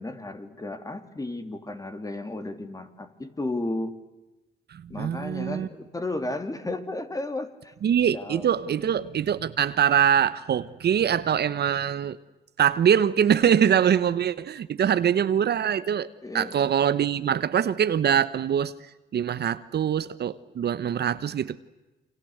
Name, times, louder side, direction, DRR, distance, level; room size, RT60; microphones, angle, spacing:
voice 1, 0.0-4.0 4.9-7.7 8.1-8.7 16.2-16.7, left 2 dB, 15° left, 9 dB, 3.0 m, -34 dB
voice 2, 4.7-5.7 7.8-12.2 12.6-16.1 16.3-18.7 19.1-21.6, right 8 dB, 55° right, 14 dB, 1.1 m, -23 dB
29.0 x 25.5 x 8.0 m, 1.0 s
cardioid pair, 90°, 20 cm